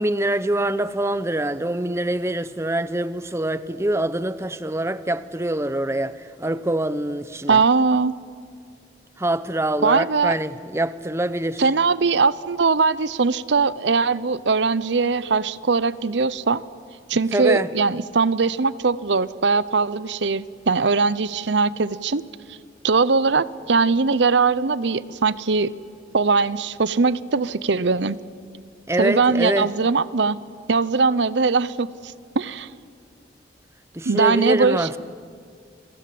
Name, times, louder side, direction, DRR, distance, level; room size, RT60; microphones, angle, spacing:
voice 1, 0.0-7.6 9.2-11.6 17.3-17.7 28.9-29.7 33.9-35.0, right 1 dB, 15° right, 0.7 m, -24 dB
voice 2, 7.5-8.1 9.8-10.4 11.6-16.6 17.1-22.2 22.5-22.6 22.8-25.7 26.1-28.2 29.0-30.4 30.7-32.7 34.0-35.0, right 4 dB, 75° right, 0.8 m, -21 dB
29.0 x 23.0 x 7.8 m
head